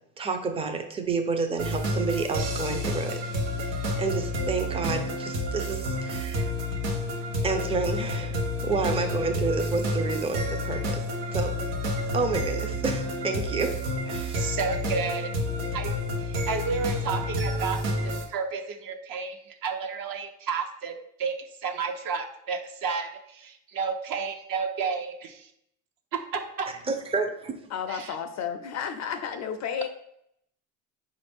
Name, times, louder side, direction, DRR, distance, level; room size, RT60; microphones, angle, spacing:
voice 1, 0.2-3.2 4.0-6.5 7.4-11.0 11.3-11.5 12.1-13.8 14.1-14.5 26.9-27.7, right 4 dB, 15° right, 5 dB, 0.5 m, -29 dB
sound 1, 1.6-18.2, left 1 dB, 85° right, 1.0 m, -29 dB
voice 2, 14.4-15.3 15.7-20.9 21.2-25.5 26.1-26.7 27.9-28.2, right 5 dB, 50° right, 5 dB, 0.8 m, -32 dB
voice 3, 27.7-29.9, left 7 dB, 40° left, 8 dB, 0.4 m, -32 dB
5.1 x 2.5 x 3.5 m, 0.73 s
supercardioid pair, 90°, 44 cm